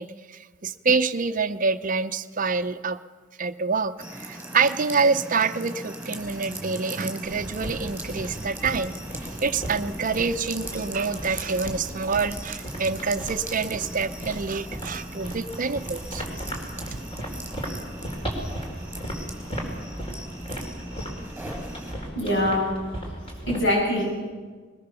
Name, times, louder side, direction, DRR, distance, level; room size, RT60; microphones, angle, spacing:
voice 1, 0.0-3.0 3.4-3.9 4.2-8.9 9.4-16.3 16.9-17.0, right 4 dB, 40° right, 10 dB, 0.6 m, -26 dB
sound 1, 4.0-21.9, right 1 dB, 10° right, 4.3 m, -39 dB
sound 2, 7.2-23.6, equal, 30° left, 4.2 m, -36 dB
voice 2, 22.1-22.8 23.4-24.3, left 1 dB, 65° left, -2 dB, 8.0 m, -24 dB
21.5 x 20.5 x 6.8 m, 1.4 s
head